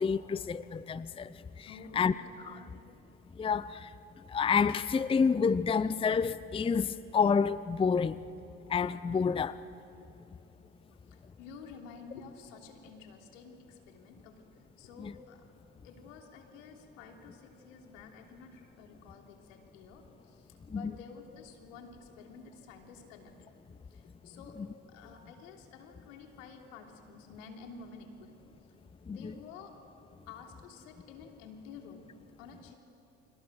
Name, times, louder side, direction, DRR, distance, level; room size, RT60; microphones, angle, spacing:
voice 1, 0.0-2.1 2.4-2.7 3.4-3.9 4.3-8.2 8.7-9.6 15.0-15.1 20.7-20.9 29.1-29.3, left 6 dB, 15° left, 0.6 m, -29 dB
voice 2, 1.7-2.0 2.5-2.7 11.0-14.5 14.8-15.5 15.8-23.3 23.9-24.6 24.9-28.4 29.1-29.8 30.3-32.0 32.4-32.8, left 5 dB, 80° left, 3.3 m, -51 dB
30.0 x 26.0 x 6.4 m
hypercardioid pair, 75°, 38 cm